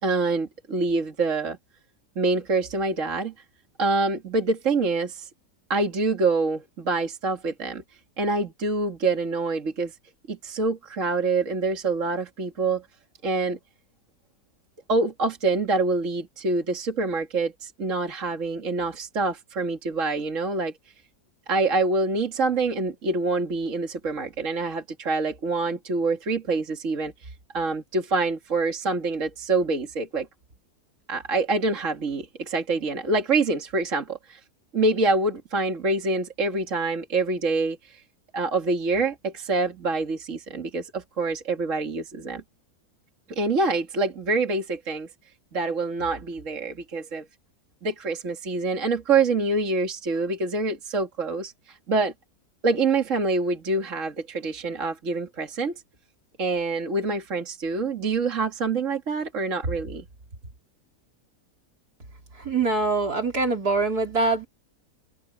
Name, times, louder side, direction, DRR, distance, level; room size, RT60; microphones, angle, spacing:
voice 1, 0.0-1.6 2.2-3.3 3.8-5.3 5.7-7.8 8.2-10.0 10.3-12.9 13.2-13.6 14.9-20.7 21.5-30.3 31.1-34.4 34.7-38.0 38.3-42.4 43.3-45.1 45.5-47.3 47.8-52.1 52.6-55.8 56.4-60.0, right 3 dB, 50° right, 2.4 m, -26 dB
voice 2, 62.4-64.5, right 3 dB, 65° right, 4.9 m, -23 dB
omnidirectional pair, 1.7 m